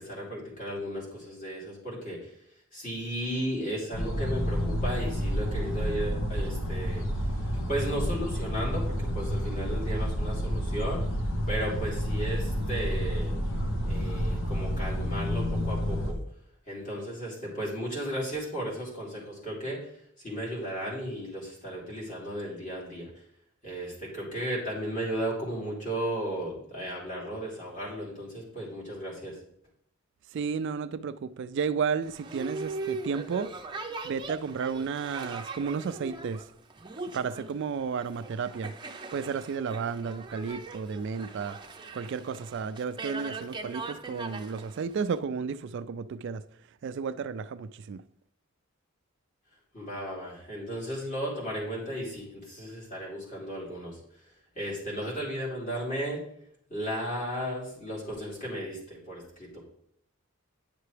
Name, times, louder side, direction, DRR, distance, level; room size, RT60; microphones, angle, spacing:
voice 1, 0.0-2.3 2.7-7.0 7.4-11.0 11.5-13.3 13.8-16.2 16.7-19.9 20.2-23.1 23.6-29.4 49.7-54.0 54.5-56.2 56.7-59.6, equal, 40° left, 3.2 m, -35 dB
sound 1, 3.9-16.1, equal, 70° left, 1.2 m, -30 dB
voice 2, 30.3-33.5 34.0-36.4 37.1-38.7 39.1-41.6 41.9-46.4 46.8-48.0, right 6 dB, 55° right, 0.3 m, -32 dB
Boat Water vehicle, 32.0-45.2, right 3 dB, 20° right, 0.6 m, -40 dB
9.8 x 6.7 x 3.3 m
head